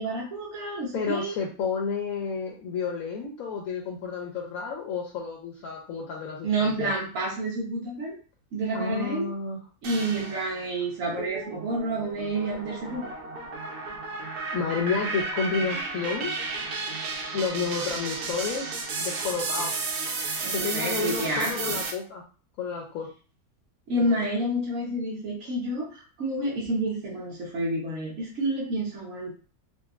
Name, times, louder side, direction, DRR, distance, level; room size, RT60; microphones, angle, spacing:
voice 1, 0.0-1.4 6.4-8.1 8.5-9.3 9.8-13.1 20.4-21.8 23.9-29.3, right 1 dB, 60° right, -4 dB, 1.3 m, -29 dB
voice 2, 0.9-6.9 8.7-9.6 14.5-16.3 17.3-18.7 19.0-19.7 20.5-22.2 22.6-23.1, left 5 dB, 70° left, -2 dB, 1.0 m, -31 dB
sound 1, 9.8-10.7 11.2-21.9, right 3 dB, 75° right, 1.2 m, -33 dB
3.7 x 2.2 x 2.4 m, 0.37 s
omnidirectional pair, 1.7 m